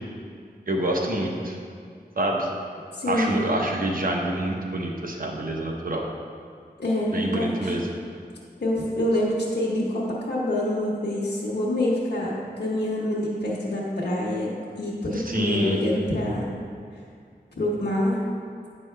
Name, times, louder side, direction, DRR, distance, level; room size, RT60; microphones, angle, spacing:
voice 1, 0.7-1.6 2.2-2.5 3.1-6.0 7.1-7.9 15.1-15.8, right 1 dB, 60° right, 0 dB, 0.9 m, -26 dB
voice 2, 2.9-3.4 6.8-7.7 8.6-14.5 14.8-16.6 17.6-18.2, left 1 dB, 85° left, -6 dB, 1.0 m, -26 dB
8.9 x 5.4 x 3.3 m, 2.2 s
wide cardioid pair, 65°, 17 cm